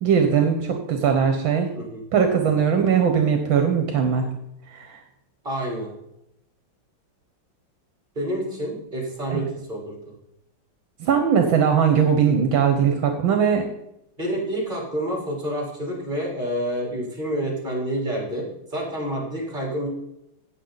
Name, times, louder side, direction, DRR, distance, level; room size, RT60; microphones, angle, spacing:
voice 1, 0.0-1.7 2.1-4.3 4.7-5.0 9.3-9.4 11.0-13.6, right 7 dB, 75° right, 5 dB, 1.8 m, -20 dB
voice 2, 1.7-2.6 5.4-5.9 8.2-10.0 14.2-19.9, right 1 dB, 25° right, -2 dB, 4.0 m, -28 dB
17.5 x 6.5 x 4.0 m, 0.82 s
omnidirectional pair, 2.2 m